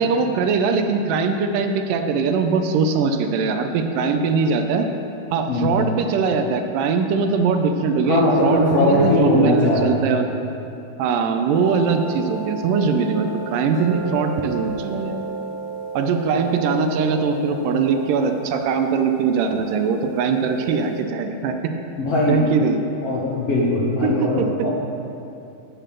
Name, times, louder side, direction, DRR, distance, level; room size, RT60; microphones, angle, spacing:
voice 1, 0.0-4.9 5.3-10.3 11.0-15.2 15.9-21.7 22.3-22.8 24.0-24.5, right 5 dB, 80° right, 6 dB, 2.1 m, -21 dB
voice 2, 8.1-10.1 16.4-16.5 22.0-22.4 23.0-24.7, left 1 dB, 65° left, -7 dB, 1.6 m, -20 dB
sound 1, 11.5-21.0, right 4 dB, 80° left, 1.4 m, -34 dB
8.7 x 7.5 x 6.6 m, 2.8 s
omnidirectional pair, 4.3 m